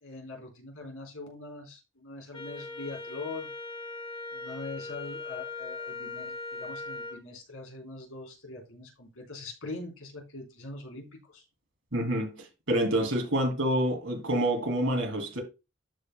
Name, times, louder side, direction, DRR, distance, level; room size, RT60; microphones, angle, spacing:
voice 1, 0.0-3.5 4.3-11.4, left 2 dB, 85° left, 3.4 m, -42 dB
Wind instrument woodwind instrument, 2.3-7.2, left 3 dB, 25° left, 1.1 m, -39 dB
voice 2, 11.9-15.4, right 1 dB, 70° right, 2.5 m, -27 dB
13.0 x 5.3 x 2.2 m
head